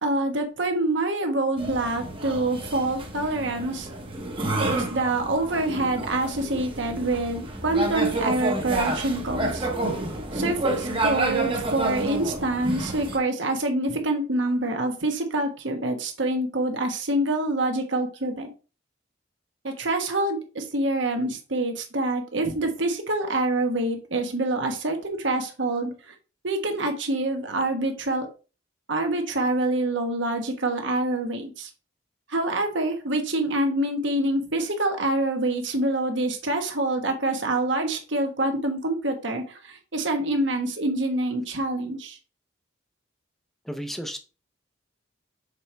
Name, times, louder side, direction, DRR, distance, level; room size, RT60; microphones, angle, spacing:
voice 1, 0.0-3.9 4.6-9.7 10.3-18.5 19.6-26.1 26.4-28.3 28.9-31.7 32.3-42.2, right 2 dB, 75° right, 1.3 m, -26 dB
sound 1, 1.6-13.2, right 2 dB, 25° right, 1.0 m, -29 dB
voice 2, 43.6-44.2, equal, ahead, 0.6 m, -33 dB
6.8 x 4.4 x 3.3 m
head